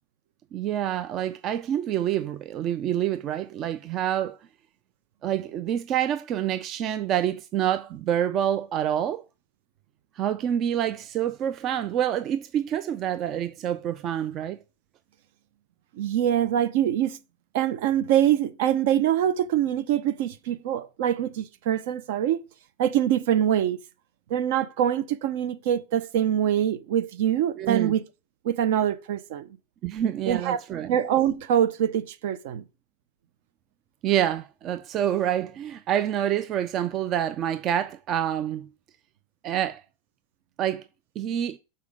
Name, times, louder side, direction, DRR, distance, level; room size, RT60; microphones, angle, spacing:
voice 1, 0.5-4.4 5.2-9.2 10.2-14.6 27.6-27.9 29.8-30.9 34.0-38.7 39.4-39.8 40.6-40.8 41.2-41.6, right 10 dB, 35° right, 0.4 m, -27 dB
voice 2, 15.9-17.2 17.5-22.4 22.8-23.8 24.3-28.0 28.4-29.5 30.3-30.6 30.9-32.6, right 10 dB, 65° right, 0.7 m, -24 dB
6.7 x 4.3 x 3.6 m
supercardioid pair, 140°, 0 cm